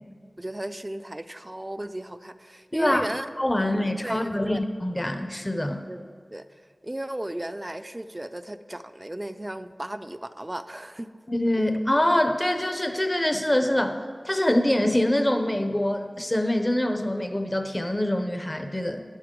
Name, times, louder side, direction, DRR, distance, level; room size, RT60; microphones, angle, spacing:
voice 1, 0.4-3.3 3.6-3.7 4.0-4.6 5.9-6.0 6.3-6.5 6.8-11.1, right 1 dB, 25° right, 11 dB, 0.5 m, -35 dB
voice 2, 2.7-3.1 3.4-5.8 11.3-19.0, left 1 dB, 25° left, 7 dB, 0.7 m, -25 dB
11.5 x 11.0 x 3.7 m, 2.1 s
wide cardioid pair, 50°, 0 cm